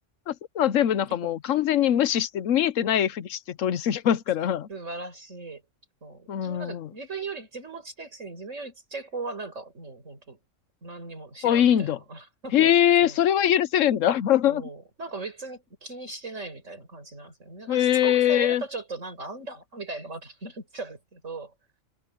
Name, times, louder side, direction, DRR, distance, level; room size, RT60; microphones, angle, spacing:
voice 1, 0.3-4.7 6.3-6.9 11.4-12.0 12.5-14.6 17.7-18.6, left 10 dB, 85° left, 1.2 m, -22 dB
voice 2, 4.7-5.6 6.0-10.4 10.8-12.7 13.0-13.2 14.4-21.5, right 3 dB, 80° right, 5.4 m, -38 dB
omnidirectional pair, 1.3 m